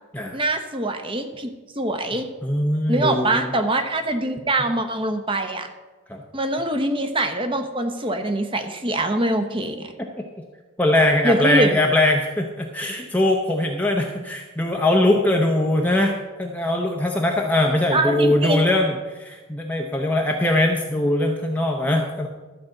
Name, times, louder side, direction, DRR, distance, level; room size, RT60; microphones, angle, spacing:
voice 1, 0.3-2.3 2.9-5.7 6.3-9.9 11.2-11.8 17.9-18.6, right 1 dB, 25° right, 6 dB, 1.0 m, -23 dB
voice 2, 2.1-3.5 6.1-6.2 10.2-10.3 10.8-22.3, left 1 dB, 5° left, 0 dB, 0.7 m, -21 dB
13.0 x 5.1 x 7.7 m, 1.2 s
head